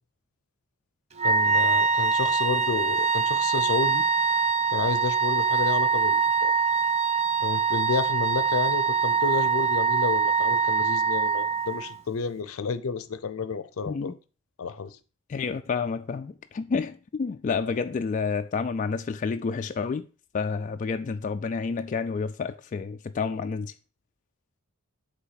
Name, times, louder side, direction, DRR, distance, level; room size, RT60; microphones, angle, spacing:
voice 1, 1.2-4.1 4.7-6.5 7.4-14.1 14.6-15.0, left 5 dB, 80° left, 0.6 m, -31 dB
Wind instrument woodwind instrument, 1.2-12.0, right 5 dB, 30° right, 0.5 m, -24 dB
voice 2, 13.9-14.2 15.3-20.1 20.3-23.7, left 5 dB, 35° left, 0.3 m, -29 dB
5.7 x 3.5 x 5.7 m
head